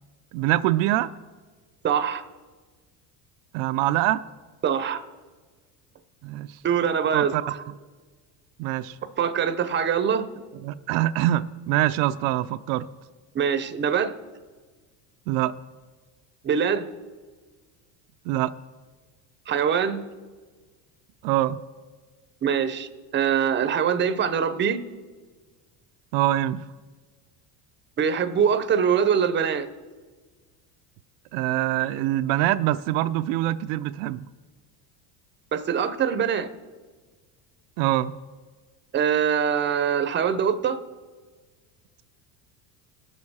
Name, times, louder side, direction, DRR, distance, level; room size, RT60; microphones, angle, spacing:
voice 1, 0.3-1.1 3.5-4.2 6.2-6.6 7.1-7.4 8.6-9.0 10.6-12.9 15.3-15.5 18.3-18.5 21.2-21.6 26.1-26.6 31.3-34.3 37.8-38.2, right 14 dB, 75° right, 10 dB, 0.5 m, -24 dB
voice 2, 1.8-2.2 4.6-5.0 6.6-7.6 9.2-10.3 13.3-14.1 16.4-16.9 19.5-20.0 22.4-24.8 28.0-29.7 35.5-36.5 38.9-40.8, right 7 dB, 25° right, 11 dB, 0.7 m, -23 dB
19.0 x 6.8 x 4.2 m, 1.4 s
cardioid pair, 120°, 43 cm